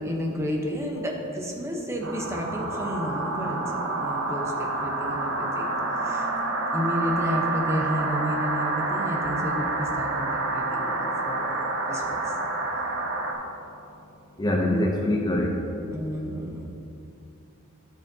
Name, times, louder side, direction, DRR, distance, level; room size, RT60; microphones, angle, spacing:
voice 1, 0.0-3.6 4.0-5.7 5.9-6.3 6.7-11.5 11.8-12.3 15.9-16.7, equal, 15° right, 0 dB, 0.9 m, -31 dB
sound 1, 2.0-13.3, right 2 dB, 55° right, 1.0 m, -28 dB
voice 2, 14.4-15.5, left 1 dB, 20° left, -1 dB, 0.5 m, -23 dB
12.5 x 6.2 x 2.7 m, 2.8 s
head